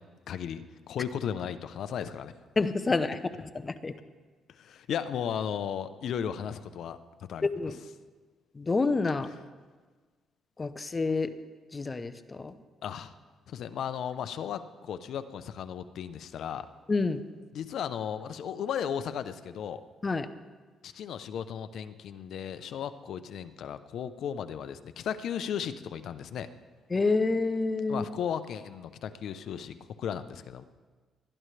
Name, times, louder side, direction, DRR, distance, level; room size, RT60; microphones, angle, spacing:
voice 1, 0.3-2.3 4.5-7.0 7.3-7.5 12.8-13.1 13.5-16.7 17.5-19.8 20.8-26.5 27.9-30.6, left 8 dB, 70° left, 11 dB, 0.7 m, -35 dB
voice 2, 2.6-3.9 7.4-7.8 8.6-9.3 10.6-11.3 11.7-12.5 16.9-17.2 20.0-20.3 26.9-28.0, left 3 dB, 25° left, 11 dB, 0.7 m, -28 dB
20.5 x 12.5 x 3.3 m, 1.4 s
cardioid pair, 90°, 0 cm